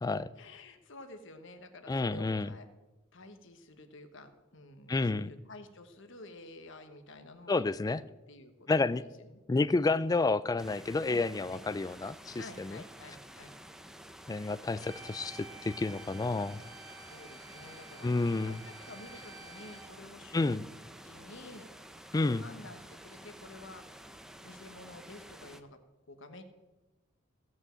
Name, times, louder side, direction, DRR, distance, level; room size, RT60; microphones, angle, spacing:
voice 1, 0.4-2.7 3.1-7.6 7.9-9.4 11.1-11.2 11.5-11.6 12.4-13.6 17.1-18.1 18.4-20.7 21.0-21.7 22.1-23.9 24.4-25.8 26.1-26.4, left 2 dB, 65° left, 7 dB, 1.3 m, -50 dB
voice 2, 1.9-2.5 4.9-5.3 7.5-8.0 8.7-9.0 9.5-12.8 14.3-16.6 18.0-18.6 20.3-20.6 22.1-22.4, left 3 dB, 20° left, 17 dB, 0.3 m, -30 dB
sound 1, 10.6-25.6, right 1 dB, 5° right, 0.7 m, -51 dB
sound 2, 14.8-19.9, right 3 dB, 20° right, 2.6 m, -51 dB
16.0 x 6.3 x 7.6 m, 1.1 s
head